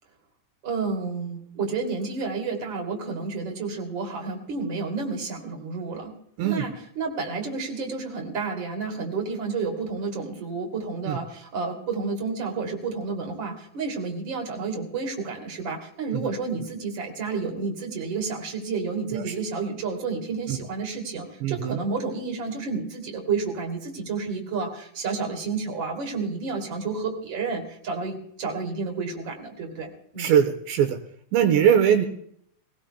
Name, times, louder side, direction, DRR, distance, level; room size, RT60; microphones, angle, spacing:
voice 1, 0.6-6.1 6.4-30.3, right 4 dB, 30° right, 2 dB, 2.9 m, -30 dB
voice 2, 21.4-21.8 30.2-31.0 31.3-32.1, right 9 dB, 80° right, 7 dB, 3.2 m, -21 dB
22.5 x 18.0 x 2.3 m, 0.66 s
omnidirectional pair, 5.1 m